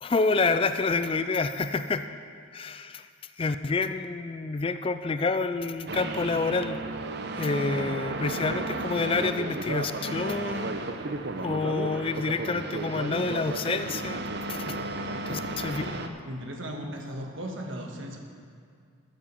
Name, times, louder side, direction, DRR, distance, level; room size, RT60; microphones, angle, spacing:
voice 1, 0.0-2.1 2.5-3.1 3.4-6.8 7.4-10.8 11.4-14.2 14.5-14.6 15.3-16.2, left 3 dB, 25° left, 11 dB, 0.3 m, -28 dB
sound 1, 5.9-16.1, right 2 dB, 55° right, 0.7 m, -33 dB
voice 2, 16.2-18.2, equal, 70° right, 2 dB, 1.5 m, -36 dB
12.0 x 7.6 x 7.0 m, 2.2 s
head